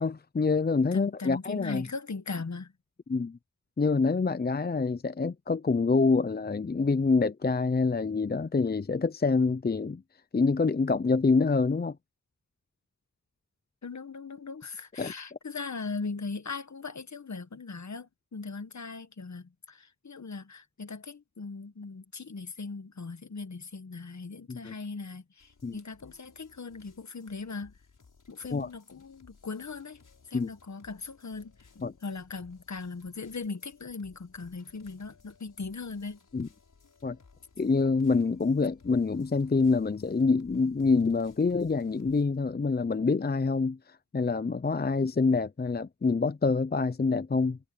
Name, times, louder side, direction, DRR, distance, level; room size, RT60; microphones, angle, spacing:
voice 1, 0.0-1.9 3.1-3.4 3.8-10.0 10.3-12.0 15.0-15.4 24.5-24.7 25.6-25.8 28.5-28.7 30.3-30.5 31.8-31.9 36.3-36.5 37.0-37.2 37.6-47.6, left 4 dB, 30° left, 0.6 m, -26 dB
voice 2, 0.9-2.7 13.8-27.7 28.3-30.0 30.3-36.2, left 4 dB, 60° left, 1.7 m, -39 dB
sound 1, 25.4-42.2, left 4 dB, 80° left, 7.2 m, -60 dB
cardioid pair, 40°, 31 cm